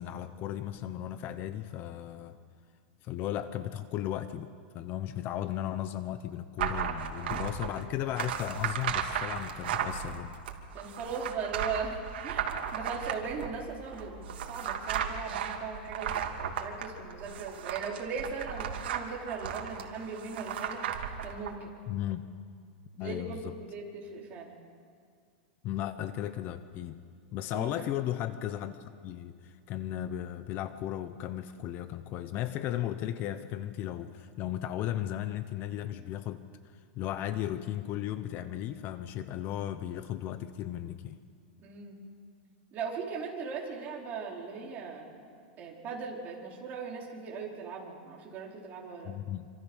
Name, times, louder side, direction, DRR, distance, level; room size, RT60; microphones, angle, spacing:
voice 1, 0.0-2.4 3.0-4.5 4.7-10.4 21.9-22.3 23.0-23.5 25.6-27.0 27.3-36.4 37.0-41.2 49.0-49.5, left 12 dB, 35° left, 11 dB, 1.0 m, -35 dB
sound 1, 6.6-21.5, right 8 dB, 75° right, 2.7 m, -35 dB
voice 2, 10.7-12.0 12.2-20.9 21.2-21.7 23.0-24.5 27.5-27.7 41.6-42.0 42.7-45.2 45.6-49.1, right 5 dB, 30° right, -2 dB, 4.8 m, -39 dB
27.0 x 25.5 x 6.5 m, 2.2 s
supercardioid pair, 150°, 6 cm